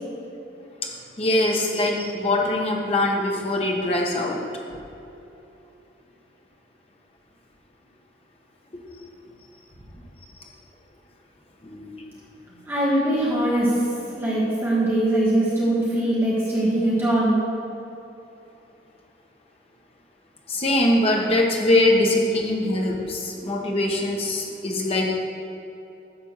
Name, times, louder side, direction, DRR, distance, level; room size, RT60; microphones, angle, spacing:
voice 1, 1.2-4.4 11.6-12.1 20.5-25.1, left 1 dB, 30° left, -1 dB, 1.0 m, -22 dB
voice 2, 12.7-13.8 14.1-17.4, right 1 dB, 15° right, -8 dB, 1.4 m, -21 dB
10.5 x 3.4 x 7.2 m, 2.9 s
head